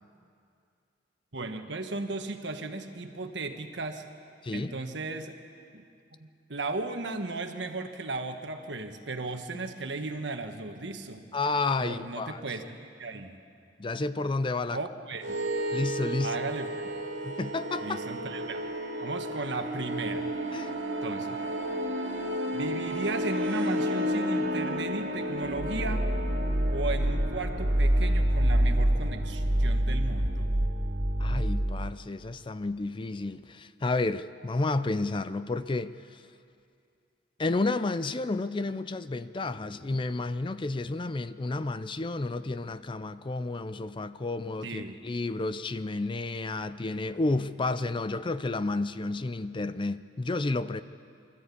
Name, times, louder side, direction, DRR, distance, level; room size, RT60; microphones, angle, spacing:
voice 1, 1.3-4.0 4.5-5.3 5.7-5.8 6.2-11.3 11.8-13.4 14.7-15.3 16.2-16.9 17.8-18.6 19.0-20.3 21.0-21.3 22.5-26.1 26.7-30.5 44.6-45.0, right 3 dB, 70° right, 1.4 m, -35 dB
voice 2, 11.3-12.4 13.8-14.8 15.7-16.3 17.2-18.0 20.5-20.7 31.2-36.2 37.4-50.8, left 3 dB, 25° left, 0.4 m, -31 dB
sound 1, 15.2-31.8, equal, 90° right, 2.3 m, -29 dB
24.5 x 13.5 x 8.4 m
head